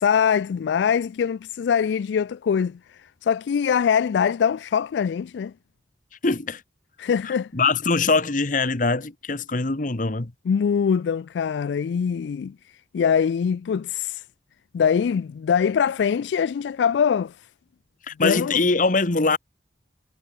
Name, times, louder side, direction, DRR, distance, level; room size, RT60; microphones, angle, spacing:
voice 1, 0.0-2.8 3.2-5.5 7.0-7.5 10.5-12.5 12.9-14.2 14.7-17.3 18.2-18.6, left 7 dB, 80° left, 0.3 m, -23 dB
voice 2, 6.2-6.6 7.2-10.3 18.1-19.4, left 3 dB, 50° left, 1.2 m, -22 dB
head